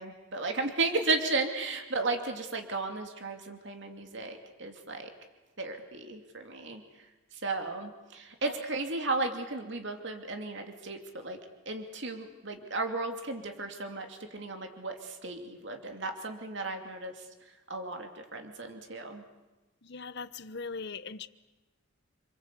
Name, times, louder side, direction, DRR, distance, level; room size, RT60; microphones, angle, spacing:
voice 1, 0.0-5.1 5.6-6.8 7.4-11.4 11.7-17.1 17.7-19.2, right 3 dB, 55° right, 4 dB, 2.7 m, -34 dB
voice 2, 19.8-21.3, left 4 dB, 55° left, 13 dB, 1.0 m, -40 dB
28.0 x 24.5 x 8.4 m, 1.1 s
head